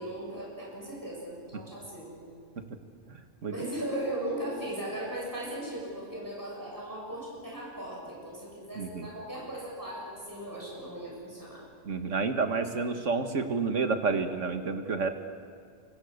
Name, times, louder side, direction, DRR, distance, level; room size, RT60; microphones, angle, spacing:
voice 1, 0.0-2.3 3.5-11.6, right 1 dB, 15° right, -4 dB, 7.3 m, -38 dB
voice 2, 3.1-3.5 8.8-9.1 11.8-15.1, right 4 dB, 80° right, 7 dB, 2.0 m, -30 dB
27.5 x 24.5 x 6.6 m, 2.2 s
omnidirectional pair, 1.3 m